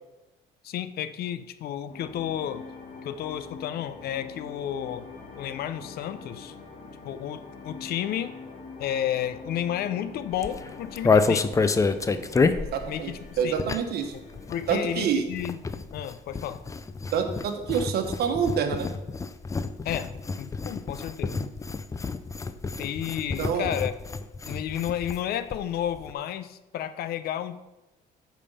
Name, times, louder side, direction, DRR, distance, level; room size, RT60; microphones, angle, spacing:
voice 1, 0.6-2.6 3.0-5.1 5.4-6.5 7.0-8.3 8.8-11.5 12.9-13.2 13.4-13.5 14.1-14.2 14.5-15.6 15.9-16.6 19.8-21.3 22.8-23.9 24.5-27.5, left 10 dB, 65° left, 12 dB, 0.6 m, -32 dB
sound 1, 1.9-15.2, left 4 dB, 40° left, 2.0 m, -44 dB
sound 2, 10.3-14.1 14.3-25.2 25.5-25.6 25.8-26.1, left 4 dB, 20° left, 0.5 m, -28 dB
voice 2, 12.7-13.1 13.4-14.1 14.7-15.2 17.1-18.9 23.4-23.7, right 7 dB, 70° right, 6 dB, 1.3 m, -27 dB
8.5 x 5.3 x 5.5 m, 1.0 s
cardioid pair, 110°, 17 cm